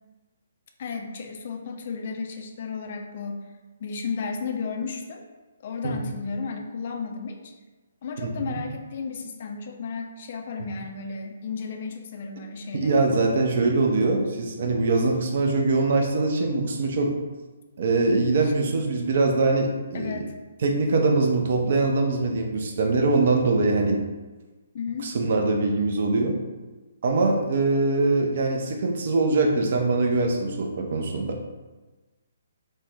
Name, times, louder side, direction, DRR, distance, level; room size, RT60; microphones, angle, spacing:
voice 1, 0.8-3.4 3.8-5.2 5.6-7.5 8.0-13.1 18.4-18.5 19.9-20.3 24.7-25.2, left 5 dB, 45° left, 4 dB, 0.3 m, -33 dB
voice 2, 8.2-8.6 12.7-17.2 17.8-20.3 20.6-24.0 25.0-26.4 27.0-31.4, right 3 dB, 50° right, 2 dB, 0.4 m, -23 dB
2.6 x 2.1 x 3.2 m, 1.2 s
figure-of-eight pair, 130°, 0 cm